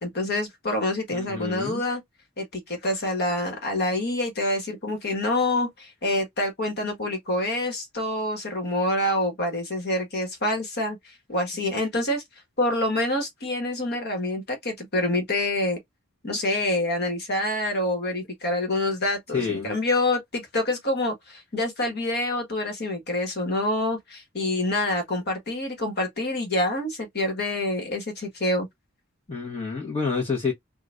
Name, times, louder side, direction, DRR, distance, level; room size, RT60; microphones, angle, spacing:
voice 1, 0.0-2.0 2.4-12.2 12.6-15.8 16.2-28.7, left 1 dB, 50° left, 1.5 m, -26 dB
voice 2, 1.1-1.8 19.3-19.7 29.3-30.5, left 5 dB, 30° left, 1.3 m, -28 dB
3.9 x 2.5 x 2.5 m
head